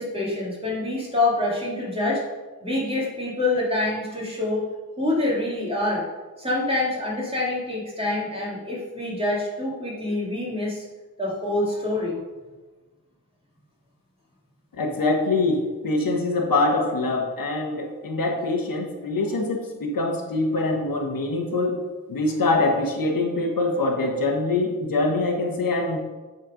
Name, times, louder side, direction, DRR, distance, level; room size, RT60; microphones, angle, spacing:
voice 1, 0.0-2.2 2.6-4.6 5.0-6.0 6.4-10.8 11.2-12.2, left 2 dB, 15° right, -4 dB, 2.5 m, -26 dB
voice 2, 14.8-21.8 22.1-26.0, left 2 dB, 70° left, 2 dB, 1.2 m, -24 dB
8.8 x 4.4 x 5.0 m, 1.3 s
wide cardioid pair, 100°, 35 cm